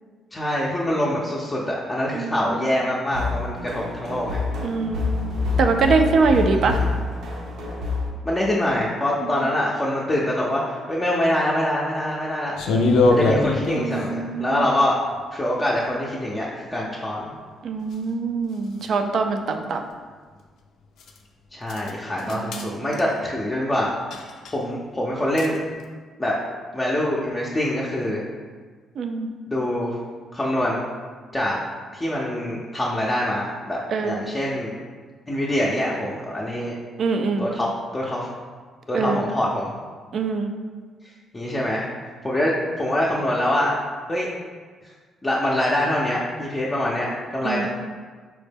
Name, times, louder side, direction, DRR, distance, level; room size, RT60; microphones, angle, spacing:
voice 1, 0.3-4.4 6.5-6.9 8.2-12.6 13.1-15.0 15.3-17.3 21.5-23.9 24.5-25.6 26.2-26.3 26.7-28.2 29.5-30.0 30.3-30.8 31.3-31.6 31.9-34.7 35.3-36.7 37.4-37.7 37.9-38.3 38.9-39.7 41.3-41.9 42.2-43.8 44.1-44.3 45.2-47.7, left 1 dB, 20° left, -5 dB, 0.5 m, -24 dB
voice 2, 2.1-2.7 4.6-5.3 5.6-6.8 9.2-9.3 13.7-14.7 17.6-19.9 22.2-23.0 29.0-29.3 33.9-34.3 37.0-37.5 38.9-39.3 40.1-40.5 47.4-47.7, right 4 dB, 60° right, 5 dB, 0.3 m, -24 dB
sound 1, 3.1-8.1, left 3 dB, 85° right, 0.7 m, -27 dB
sound 2, 12.6-14.0 17.9-18.0 18.8-18.9 21.0-21.2 21.7-21.9 22.2-22.7 22.9-23.2 24.1-24.5 25.4-25.6, left 2 dB, 80° left, 0.4 m, -21 dB
4.2 x 2.1 x 3.3 m, 1.5 s
cardioid pair, 90°, 0 cm